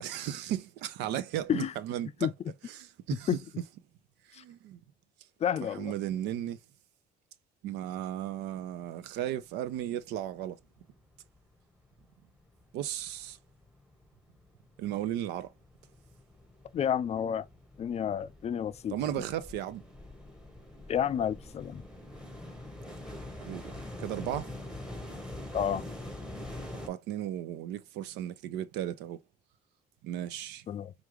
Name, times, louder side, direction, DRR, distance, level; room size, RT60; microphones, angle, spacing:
voice 1, 0.0-2.3 2.6-3.4 4.3-4.8 5.7-6.6 7.6-10.6 12.7-13.4 14.8-15.5 18.9-19.8 23.4-24.5 26.9-29.2 30.0-30.7, right 11 dB, 90° right, 0.5 m, -35 dB
voice 2, 5.4-5.9 16.7-17.4 17.8-18.9 20.9-21.8 25.5-25.8 30.7-30.9, left 9 dB, 40° left, 0.4 m, -30 dB
sound 1, 10.2-10.3 10.6-11.6 11.9-26.9, left 1 dB, 5° right, 1.1 m, -45 dB
4.7 x 2.5 x 3.0 m
cardioid pair, 110°, 17 cm